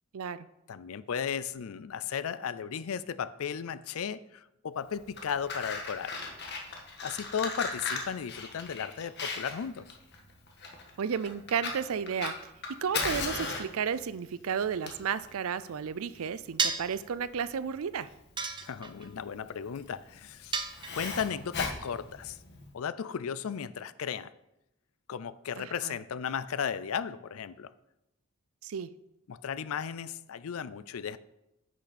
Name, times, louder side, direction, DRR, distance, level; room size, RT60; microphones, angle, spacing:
voice 1, 0.1-0.5 11.0-12.5 12.8-18.1 25.6-25.9 28.6-28.9, right 7 dB, 75° right, 0.4 m, -33 dB
voice 2, 0.7-6.2 7.0-9.9 18.6-20.6 20.9-22.4 22.7-24.3 25.1-27.7 29.3-31.2, left 7 dB, 70° left, 0.4 m, -35 dB
Fire, 5.0-22.7, left 4 dB, 50° left, 1.4 m, -38 dB
sound 1, 16.6-17.0 18.4-19.1 20.5-21.3, right 5 dB, 20° right, 0.6 m, -32 dB
9.9 x 6.4 x 4.2 m
head